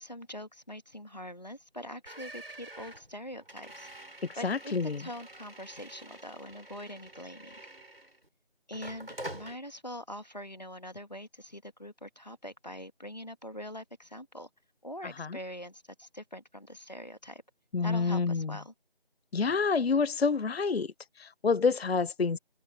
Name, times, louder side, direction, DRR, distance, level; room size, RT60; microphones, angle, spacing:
voice 1, 0.0-3.9 4.4-7.5 8.7-14.5 14.8-17.4 17.8-18.7, equal, 40° left, 1.8 m, -43 dB
sound 1, 2.1-8.3 8.7-9.6, right 1 dB, 65° right, 5.4 m, -47 dB
voice 2, 4.3-5.0 15.0-15.4 17.7-18.6 19.3-22.4, left 5 dB, 70° left, 0.5 m, -28 dB
figure-of-eight pair, 180°, 32 cm